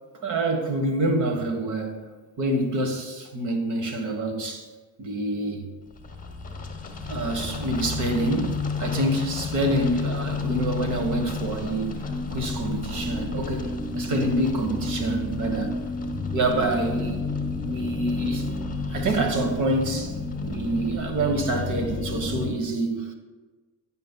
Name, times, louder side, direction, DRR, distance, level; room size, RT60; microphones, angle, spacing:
voice 1, 0.2-2.0 2.4-4.7 5.0-5.6 7.1-15.8 16.3-17.2 17.6-18.5 18.9-23.1, right 2 dB, 55° right, 1.2 m, -27 dB
sound 1, 5.9-22.5, left 3 dB, 25° left, 0.9 m, -31 dB
9.1 x 5.7 x 2.2 m
supercardioid pair, 75°, 36 cm